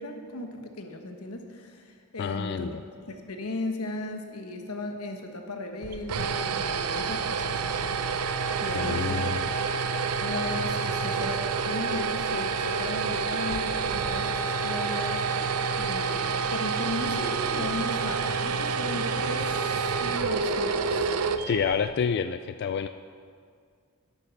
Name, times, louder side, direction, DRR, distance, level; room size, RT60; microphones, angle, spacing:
voice 1, 0.0-2.7 3.0-7.6 8.6-9.3 9.9-20.8, left 2 dB, 80° left, 4 dB, 1.2 m, -36 dB
voice 2, 2.2-2.8 8.7-9.4 21.5-22.9, left 6 dB, 50° left, 10 dB, 0.3 m, -28 dB
sound 1, 5.8-22.0, right 5 dB, 90° right, 0.6 m, -28 dB
12.0 x 8.2 x 5.8 m, 2.1 s
head